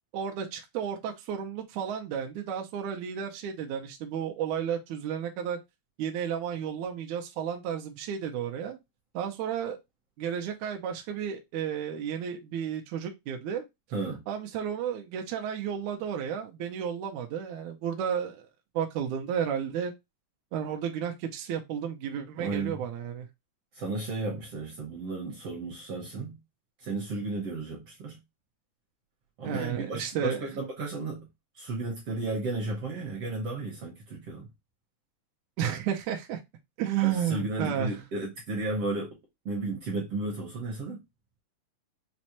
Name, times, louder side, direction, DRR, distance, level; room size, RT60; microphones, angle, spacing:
voice 1, 0.1-5.6 6.0-8.8 9.1-9.8 10.2-13.7 14.3-18.5 18.8-19.9 20.5-23.3 29.4-30.5 35.6-36.4 36.8-38.0, right 8 dB, 80° right, 1.7 m, -32 dB
voice 2, 13.9-14.2 22.4-22.8 23.7-26.4 26.8-28.2 29.4-31.3 31.6-34.5 37.0-39.1 39.4-41.0, right 2 dB, 65° right, 1.5 m, -33 dB
6.2 x 2.1 x 2.8 m
omnidirectional pair, 4.0 m